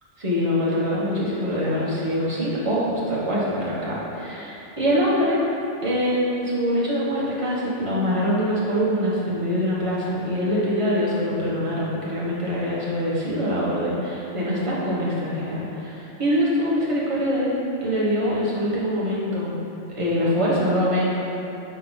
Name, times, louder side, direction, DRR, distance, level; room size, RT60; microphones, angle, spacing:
voice 1, 0.2-5.4 5.8-17.5 17.8-19.5 20.0-21.2, equal, 30° right, -7 dB, 1.2 m, -24 dB
6.5 x 3.7 x 4.0 m, 2.9 s
omnidirectional pair, 1.2 m